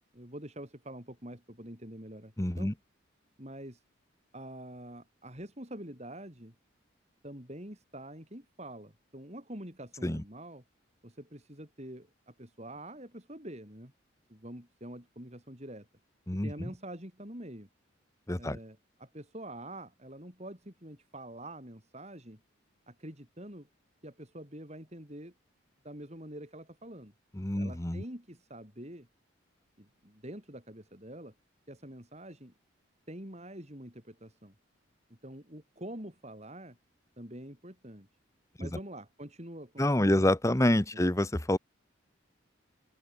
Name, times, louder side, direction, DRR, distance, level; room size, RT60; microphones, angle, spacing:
voice 1, 0.0-2.7 3.4-3.8 4.3-6.5 7.2-10.6 11.0-13.9 14.3-15.9 16.3-17.7 18.4-22.4 22.9-23.7 24.0-25.3 25.8-27.1 27.5-29.1 29.8-31.3 31.7-32.5 33.1-34.5 35.1-36.8 37.2-38.1 38.6-40.3 40.9-41.1, right 1 dB, 35° right, 6.2 m, -46 dB
voice 2, 2.4-2.7 10.0-10.2 16.3-16.7 18.3-18.6 27.3-28.0 38.6-38.7 39.8-41.6, left 1 dB, 15° left, 1.0 m, -27 dB
open air
head